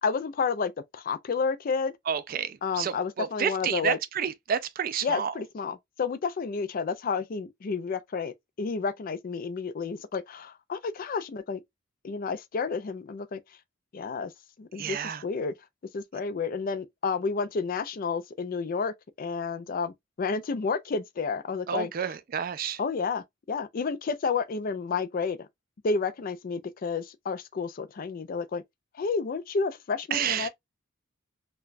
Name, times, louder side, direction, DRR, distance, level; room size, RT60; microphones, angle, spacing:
voice 1, 0.0-1.9 2.6-4.0 5.0-11.6 12.0-13.4 13.9-14.3 14.6-15.5 15.9-21.9 22.8-25.5 25.8-28.6 29.0-30.5, left 5 dB, 45° left, 0.4 m, -31 dB
voice 2, 2.1-5.3 14.7-15.2 21.7-22.8 30.1-30.5, right 8 dB, 45° right, 0.4 m, -30 dB
3.8 x 2.3 x 2.5 m
head